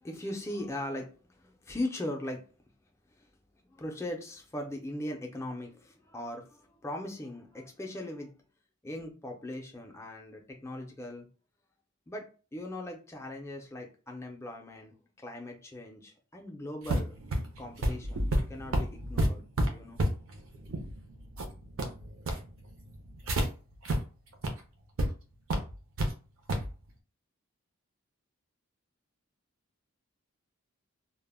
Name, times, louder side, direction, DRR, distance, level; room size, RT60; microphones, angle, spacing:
voice 1, 0.0-2.5 3.1-3.3 3.7-8.4 8.8-11.3 12.1-17.2 17.6-20.0, left 1 dB, 10° left, 2 dB, 0.4 m, -39 dB
sound 1, 16.8-23.5 23.9-24.0 24.3-24.5 25.0-25.1 25.5-26.1 26.5-26.7, right 1 dB, 65° right, 0.5 m, -30 dB
2.1 x 2.0 x 3.3 m, 0.36 s
head